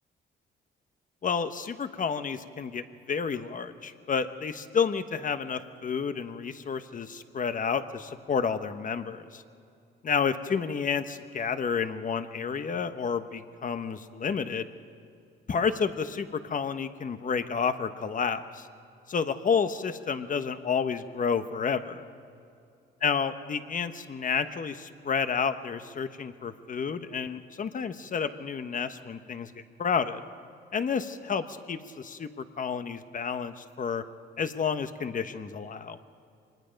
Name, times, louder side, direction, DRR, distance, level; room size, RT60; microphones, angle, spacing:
voice 1, 1.2-9.4 10.0-14.7 15.5-18.7 19.1-22.0 23.0-30.2 30.7-34.0 34.4-36.0, left 6 dB, 40° left, 10 dB, 1.1 m, -30 dB
24.5 x 20.5 x 5.3 m, 2.5 s
cardioid pair, 90°, 20 cm